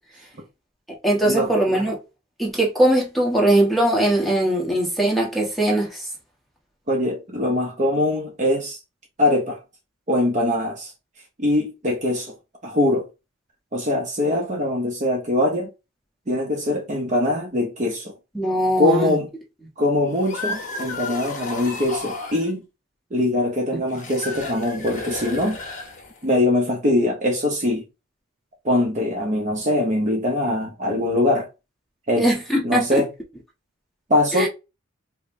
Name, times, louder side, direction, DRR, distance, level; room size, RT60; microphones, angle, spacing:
voice 1, 1.0-2.0 2.4-6.1 18.3-19.2 32.2-33.0 34.3-34.5, right 1 dB, ahead, 1.1 m, -20 dB
voice 2, 6.9-8.8 9.2-9.6 10.1-10.9 11.4-12.3 12.6-13.0 13.7-15.7 16.3-18.1 18.8-19.3 19.8-22.7 23.1-25.6 26.2-27.8 28.6-31.5 32.1-32.3 32.6-33.1 34.1-34.5, left 1 dB, 35° right, 0.7 m, -22 dB
sound 1, 20.1-22.5 23.9-26.3, left 3 dB, 40° left, 0.9 m, -33 dB
5.1 x 2.1 x 2.6 m
head